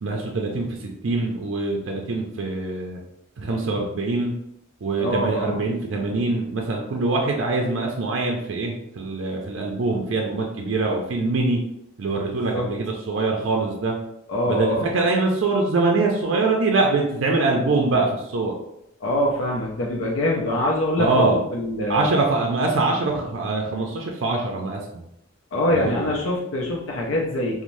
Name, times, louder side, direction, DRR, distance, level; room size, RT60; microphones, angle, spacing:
voice 1, 0.0-3.0 3.4-4.3 4.8-11.6 12.0-14.0 14.5-18.5 21.0-21.4 21.9-25.0 25.7-26.1, right 3 dB, 65° right, 0 dB, 0.4 m, -23 dB
voice 2, 5.0-5.6 12.5-12.7 14.3-14.9 19.0-22.1 25.5-27.6, left 1 dB, 70° left, -2 dB, 0.5 m, -24 dB
3.1 x 2.1 x 2.6 m, 0.79 s
head